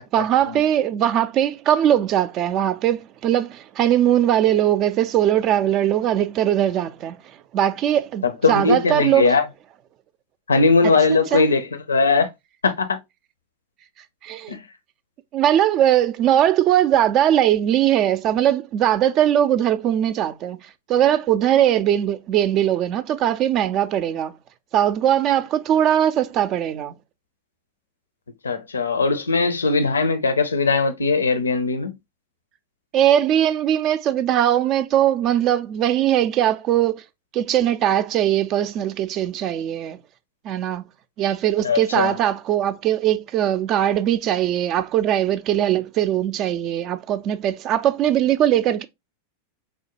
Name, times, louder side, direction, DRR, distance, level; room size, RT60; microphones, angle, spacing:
voice 1, 0.1-7.2 7.5-9.4 11.1-11.4 14.2-14.6 15.3-20.6 20.9-24.4 24.7-26.9 32.9-37.0 37.3-40.0 40.4-40.8 41.2-48.9, right 11 dB, 35° right, 0.3 m, -20 dB
voice 2, 8.4-9.4 10.5-12.3 12.6-12.9 14.5-14.6 28.4-31.9 41.6-42.1, left 4 dB, 75° left, 0.5 m, -19 dB
4.7 x 2.1 x 2.9 m
figure-of-eight pair, 90°, 0 cm